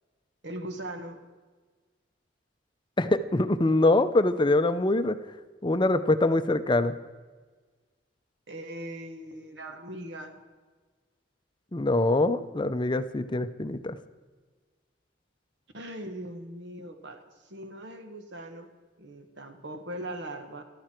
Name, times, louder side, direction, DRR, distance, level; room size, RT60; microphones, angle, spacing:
voice 1, 0.4-1.2 8.5-10.4 15.7-18.7 19.0-20.6, right 1 dB, 65° right, 6 dB, 1.5 m, -40 dB
voice 2, 3.0-5.2 5.6-7.0 11.7-14.0, left 2 dB, 25° left, 11 dB, 0.6 m, -24 dB
14.5 x 12.5 x 4.5 m, 1.4 s
head